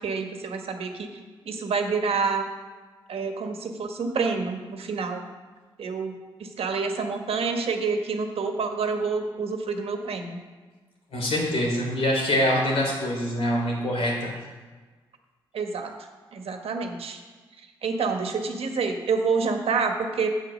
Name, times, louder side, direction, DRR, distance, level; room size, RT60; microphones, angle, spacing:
voice 1, 0.0-1.2 1.4-2.5 3.1-5.2 5.8-6.1 6.4-10.4 15.5-15.9 16.3-17.2 17.6-20.3, right 4 dB, 70° right, 5 dB, 1.4 m, -28 dB
voice 2, 11.1-14.3, equal, 70° left, -2 dB, 3.7 m, -24 dB
8.0 x 7.6 x 6.4 m, 1.4 s
supercardioid pair, 45°, 10 cm